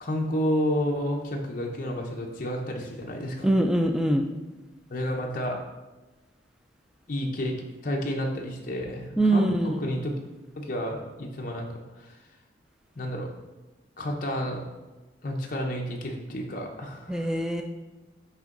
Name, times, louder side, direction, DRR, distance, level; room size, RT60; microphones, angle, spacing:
voice 1, 0.0-3.5 4.9-5.6 7.1-7.5 7.8-10.2 10.5-12.2 13.0-13.3 14.0-14.6 15.2-17.4, equal, 45° left, 0 dB, 0.7 m, -30 dB
voice 2, 3.4-4.3 9.2-9.9 17.1-17.6, right 1 dB, 5° right, 3 dB, 0.3 m, -23 dB
6.9 x 4.4 x 3.7 m, 1.2 s
head